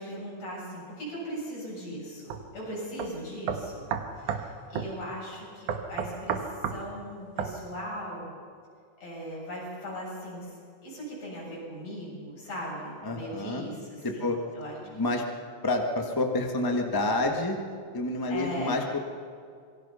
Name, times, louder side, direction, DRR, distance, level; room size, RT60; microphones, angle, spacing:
voice 1, 0.0-3.9 4.2-8.3 9.0-10.6 10.8-14.3 14.5-14.8 18.3-18.8, equal, 60° left, -5 dB, 9.4 m, -39 dB
sound 1, 2.3-2.4 3.0-3.1 3.5-4.5 4.8-4.9 5.7-6.8 7.4-7.6, right 7 dB, 85° right, 2.8 m, -31 dB
voice 2, 13.0-13.7 14.0-14.4 14.9-15.2 15.6-17.6 17.9-19.0, left 2 dB, 15° left, 3 dB, 0.8 m, -28 dB
26.0 x 22.0 x 5.7 m, 2.2 s
omnidirectional pair, 3.5 m